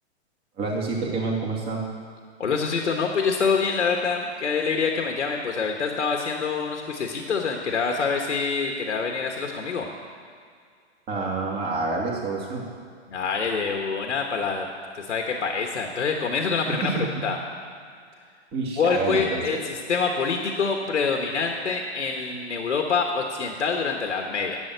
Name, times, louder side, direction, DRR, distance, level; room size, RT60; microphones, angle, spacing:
voice 1, 0.6-1.8 11.1-12.6 16.7-17.3 18.5-19.4, right 3 dB, 30° right, -2 dB, 2.8 m, -28 dB
voice 2, 2.4-9.9 13.1-14.7 15.0-17.4 18.8-24.6, left 5 dB, 85° left, 2 dB, 1.4 m, -26 dB
11.5 x 8.0 x 8.0 m, 2.2 s
hypercardioid pair, 125°, 35 cm